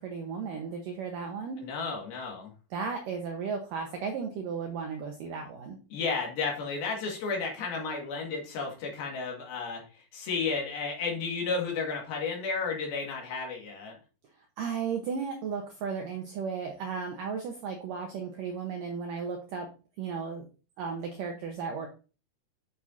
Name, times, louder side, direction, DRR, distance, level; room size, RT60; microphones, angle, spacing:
voice 1, 0.0-1.6 2.7-5.8 14.6-19.7 20.0-20.4 20.8-21.9, right 6 dB, 90° right, 3 dB, 1.9 m, -35 dB
voice 2, 1.6-2.5 5.9-9.8 10.1-14.0, left 4 dB, 60° left, 0 dB, 3.4 m, -32 dB
9.8 x 6.4 x 2.7 m, 0.34 s
omnidirectional pair, 5.3 m